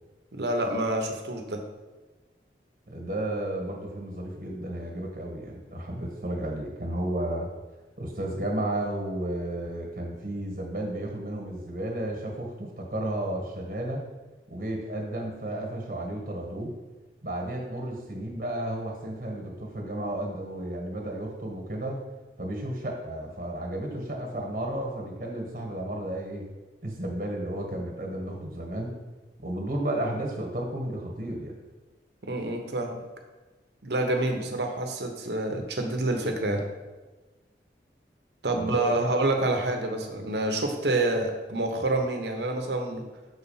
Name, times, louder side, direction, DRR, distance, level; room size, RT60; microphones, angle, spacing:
voice 1, 0.3-1.6 32.2-33.0 33.8-36.6 38.4-43.0, right 2 dB, 75° right, 4 dB, 1.0 m, -27 dB
voice 2, 2.9-7.5 8.0-14.0 14.5-16.7 17.2-22.0 22.4-26.4 26.8-28.9 29.4-31.5 38.5-39.1, right 1 dB, 50° right, 1 dB, 1.5 m, -33 dB
6.3 x 4.1 x 5.6 m, 1.2 s
head